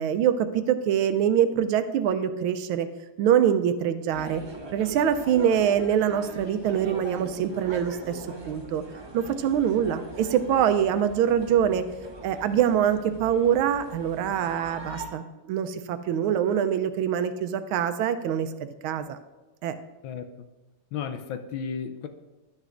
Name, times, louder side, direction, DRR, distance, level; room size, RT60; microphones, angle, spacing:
voice 1, 0.0-2.9 3.2-4.4 4.7-8.8 9.1-11.9 12.2-18.5 18.8-19.2 19.6-19.8, right 9 dB, 80° right, 10 dB, 1.4 m, -24 dB
sound 1, 4.1-15.1, right 2 dB, 40° right, 0.3 m, -41 dB
voice 2, 20.0-20.5 20.9-22.1, left 7 dB, 75° left, 7 dB, 1.3 m, -34 dB
11.5 x 9.6 x 2.5 m, 1.1 s
omnidirectional pair, 2.3 m